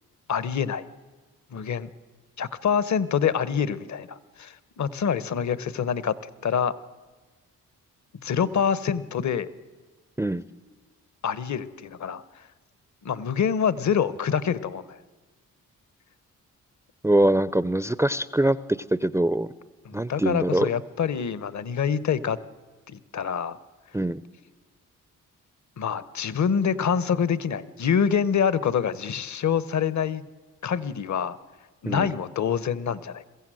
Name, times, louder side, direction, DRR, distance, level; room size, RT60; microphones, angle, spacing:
voice 1, 0.3-0.9 1.5-1.9 2.4-6.7 8.2-9.5 11.2-12.2 13.0-15.0 19.8-22.4 22.9-23.6 25.8-30.2 30.6-31.4 31.8-33.2, left 7 dB, 50° left, 17 dB, 1.0 m, -26 dB
voice 2, 17.0-19.5 19.9-20.7 23.9-24.2 31.9-32.1, right 1 dB, 10° right, 16 dB, 0.5 m, -23 dB
22.0 x 15.5 x 7.7 m, 1.3 s
supercardioid pair, 50°, 35 cm